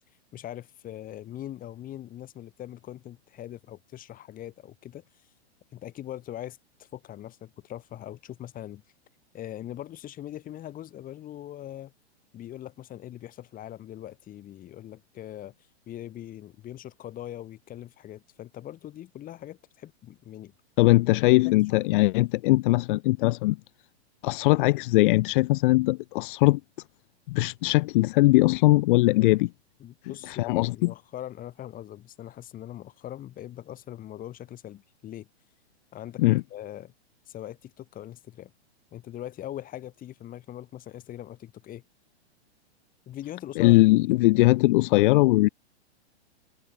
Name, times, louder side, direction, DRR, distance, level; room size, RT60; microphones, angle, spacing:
voice 1, 0.3-5.0 5.7-8.8 9.3-11.9 12.3-15.5 15.9-20.5 21.4-21.8 29.8-35.3 35.9-36.2 36.5-36.9 37.3-38.5 38.9-41.8 43.1-43.8, left 12 dB, 25° left, 7.0 m, -41 dB
voice 2, 20.8-23.6 24.2-26.6 27.3-29.5 30.3-30.9 36.2-36.4 43.6-45.5, left 20 dB, 50° left, 2.6 m, -20 dB
hypercardioid pair, 140°, 34 cm